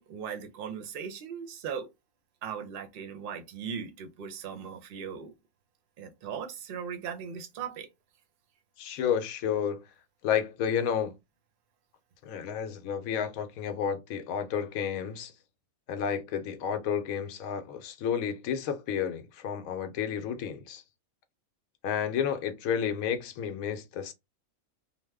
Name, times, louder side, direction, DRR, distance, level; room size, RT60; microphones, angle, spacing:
voice 1, 0.0-1.9 2.4-5.3 6.0-7.9, right 7 dB, 55° right, 0.6 m, -38 dB
voice 2, 8.8-9.8 10.2-11.1 12.2-15.3 15.9-20.8 21.8-24.1, left 8 dB, 75° left, 1.0 m, -31 dB
2.8 x 2.0 x 3.4 m
omnidirectional pair, 1.5 m